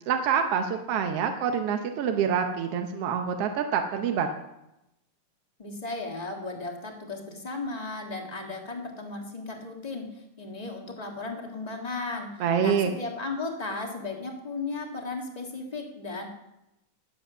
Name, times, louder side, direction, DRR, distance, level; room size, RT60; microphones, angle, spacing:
voice 1, 0.1-4.3 12.4-12.9, right 7 dB, 65° right, 5 dB, 1.6 m, -26 dB
voice 2, 5.6-16.3, left 3 dB, 25° left, 2 dB, 0.9 m, -35 dB
20.0 x 7.9 x 6.2 m, 0.91 s
omnidirectional pair, 3.4 m